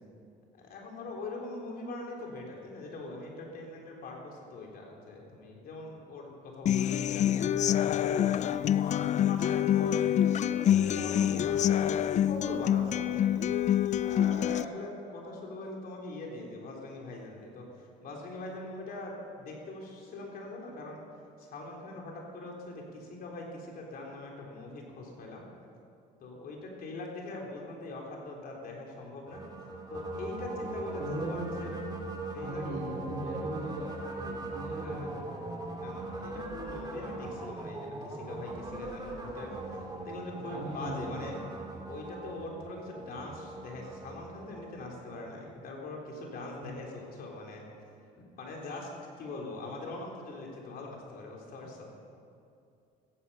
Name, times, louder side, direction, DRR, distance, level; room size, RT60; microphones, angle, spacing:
voice 1, 0.5-8.6 9.1-13.4 13.9-21.0 21.4-25.4 26.2-29.4 29.9-31.7 32.3-33.0 34.8-35.2 35.8-39.5 40.0-41.4 41.9-47.6 48.2-48.9 49.2-52.0, left 2 dB, 60° left, -1 dB, 3.6 m, -42 dB
Human voice / Acoustic guitar, 6.7-14.6, left 10 dB, 45° left, 0.4 m, -26 dB
sound 1, 29.3-45.5, right 2 dB, 25° right, 2.5 m, -40 dB
voice 2, 31.0-31.7 32.4-35.2 39.3-39.6 40.5-41.3 46.6-46.7, right 2 dB, 70° right, -6 dB, 3.0 m, -39 dB
16.5 x 14.0 x 5.6 m, 2.5 s
cardioid pair, 110°, 17 cm